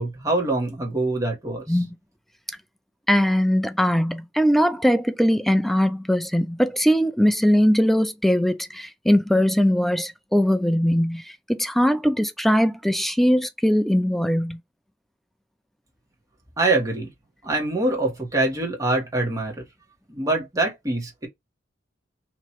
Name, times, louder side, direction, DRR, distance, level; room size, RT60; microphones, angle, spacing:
voice 1, 0.0-1.8 16.6-17.1 17.4-19.6 20.1-21.3, right 2 dB, 20° right, 1.6 m, -24 dB
voice 2, 3.1-14.6, equal, ahead, 0.3 m, -20 dB
3.1 x 2.8 x 4.3 m
head